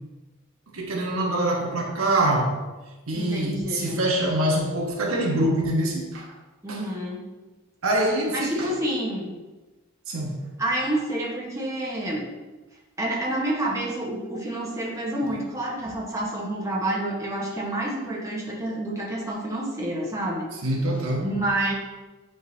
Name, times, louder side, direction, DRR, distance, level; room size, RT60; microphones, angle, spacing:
voice 1, 0.7-2.6 3.1-6.3 6.7-6.8 7.8-8.7 10.1-10.4 20.6-21.3, right 1 dB, 75° right, -1 dB, 1.2 m, -24 dB
voice 2, 3.1-4.0 6.6-7.3 8.3-9.3 10.6-12.3 13.0-20.5 21.2-21.7, right 1 dB, 15° right, -4 dB, 1.1 m, -28 dB
9.3 x 3.8 x 2.8 m, 1.2 s
head